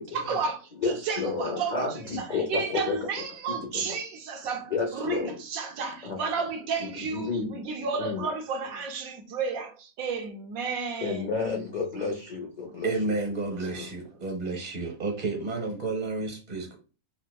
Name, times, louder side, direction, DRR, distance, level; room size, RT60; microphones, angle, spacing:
voice 1, 0.0-11.5 12.7-12.8, right 5 dB, 80° right, 1.1 m, -32 dB
voice 2, 0.8-3.1 3.5-4.0 4.7-5.4 6.0-6.2 6.8-7.6 8.0-8.3 11.0-12.9, left 4 dB, 80° left, 0.4 m, -31 dB
voice 3, 12.8-16.7, right 3 dB, 40° right, 0.7 m, -31 dB
4.4 x 2.1 x 2.2 m
omnidirectional pair, 1.5 m